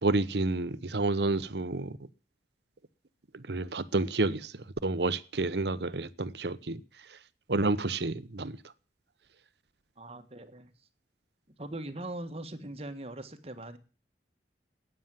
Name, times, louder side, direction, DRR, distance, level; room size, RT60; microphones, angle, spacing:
voice 1, 0.0-2.0 3.3-4.5 4.8-6.8 7.5-8.6, right 2 dB, 70° right, 0.9 m, -29 dB
voice 2, 10.0-10.7 11.6-13.8, right 1 dB, 35° right, 1.7 m, -41 dB
13.0 x 9.2 x 9.2 m
head